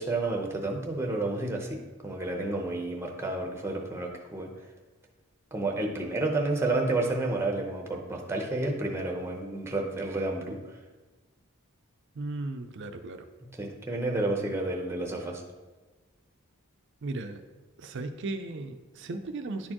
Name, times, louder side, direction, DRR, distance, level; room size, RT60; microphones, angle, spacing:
voice 1, 0.0-1.8 2.0-4.5 5.5-10.6 13.5-15.4, right 2 dB, 10° right, 1 dB, 0.7 m, -30 dB
voice 2, 12.2-13.2 17.0-17.4 17.8-19.7, right 2 dB, 55° right, 7 dB, 0.4 m, -36 dB
10.5 x 4.3 x 2.9 m, 1.2 s
head